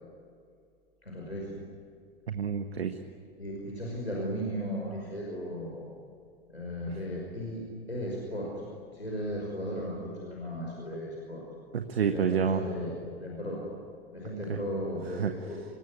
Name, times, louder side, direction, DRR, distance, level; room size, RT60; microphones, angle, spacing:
voice 1, 1.0-1.7 3.4-5.8 6.5-8.6 8.9-11.4 12.1-13.6 14.1-15.7, equal, 90° left, -2 dB, 5.5 m, -36 dB
voice 2, 2.3-3.0 6.9-7.0 11.7-12.7 14.5-14.6 15.1-15.6, right 7 dB, 75° right, 6 dB, 1.5 m, -29 dB
25.5 x 22.0 x 9.6 m, 2.3 s
figure-of-eight pair, 85°, 31 cm